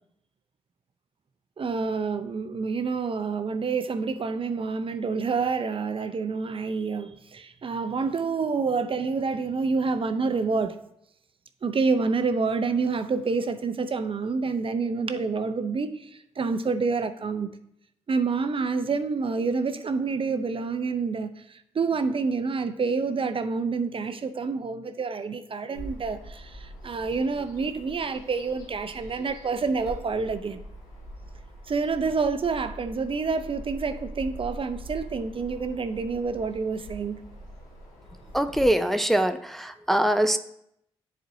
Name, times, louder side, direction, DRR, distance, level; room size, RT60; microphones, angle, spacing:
voice 1, 1.6-10.8 11.6-17.5 18.1-30.6 31.7-37.2, right 4 dB, 45° right, 0.5 m, -28 dB
Bird vocalization bird call bird song, 25.7-38.6, right 1 dB, 90° left, 1.3 m, -43 dB
voice 2, 38.3-40.4, right 1 dB, ahead, 0.4 m, -23 dB
10.0 x 4.3 x 2.7 m
hypercardioid pair, 40°, 13 cm